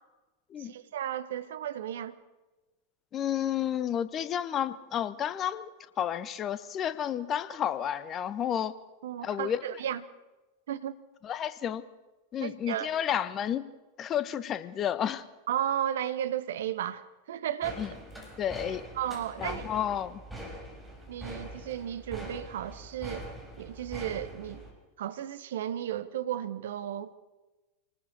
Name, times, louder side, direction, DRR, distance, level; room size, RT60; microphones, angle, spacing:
voice 1, 0.6-2.2 9.0-10.0 10.7-11.0 12.4-12.9 15.5-17.8 18.9-19.7 21.1-23.3 23.6-24.6 25.0-27.2, right 10 dB, 60° right, 1.3 m, -34 dB
voice 2, 3.1-5.7 6.0-8.7 9.2-9.6 11.2-11.8 12.3-13.7 14.0-15.2 17.8-17.9 18.4-18.9 19.4-20.2, left 9 dB, 30° left, 1.2 m, -31 dB
sound 1, 17.6-24.7, right 1 dB, ahead, 6.4 m, -43 dB
26.5 x 20.0 x 6.5 m
figure-of-eight pair, 90°, 0 cm